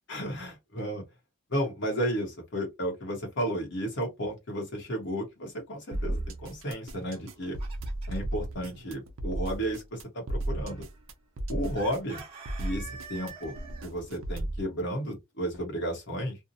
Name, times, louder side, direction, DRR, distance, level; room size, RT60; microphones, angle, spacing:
voice 1, 0.1-1.0 1.5-7.6 8.1-10.8 11.5-12.2 12.6-13.5 13.8-16.4, equal, 55° left, 0.9 m, -33 dB
sound 1, 5.9-14.6, right 1 dB, 60° right, 0.5 m, -35 dB
Chicken rooster, 7.1-8.3 11.7-13.9, right 5 dB, 25° right, 1.0 m, -46 dB
2.6 x 2.0 x 2.6 m
head